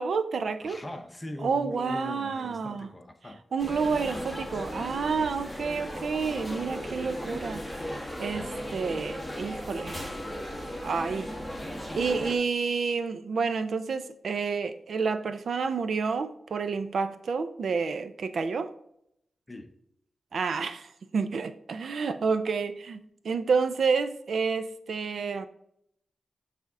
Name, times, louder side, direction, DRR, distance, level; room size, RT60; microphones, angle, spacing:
voice 1, 0.0-0.8 1.4-2.9 3.5-7.6 8.2-10.0 10.8-11.3 12.0-18.7 20.3-25.5, right 5 dB, 70° right, 0.5 m, -29 dB
voice 2, 0.6-3.4 19.5-19.7, left 1 dB, 20° left, 0.8 m, -40 dB
sound 1, 3.6-12.4, equal, ahead, 1.1 m, -36 dB
9.0 x 3.5 x 3.7 m
wide cardioid pair, 135°, 0 cm